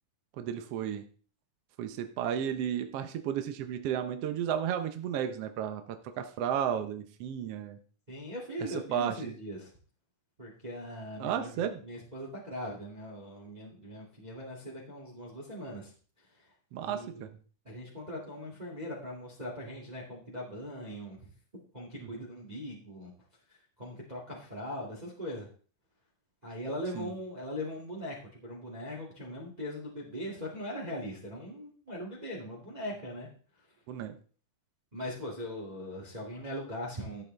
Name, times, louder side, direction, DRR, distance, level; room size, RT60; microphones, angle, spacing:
voice 1, 0.4-1.0 1.8-5.8 6.2-7.8 8.9-9.3 11.2-11.8 16.7-17.3 26.9-27.1 33.9-34.1, right 9 dB, 70° right, 7 dB, 1.5 m, -33 dB
voice 2, 8.1-9.7 10.4-15.9 16.2-16.5 16.8-17.3 17.6-21.3 21.7-23.1 23.5-25.5 26.4-33.3 34.9-37.2, equal, 15° right, -3 dB, 2.0 m, -40 dB
13.5 x 8.4 x 3.4 m, 0.41 s
omnidirectional pair, 3.6 m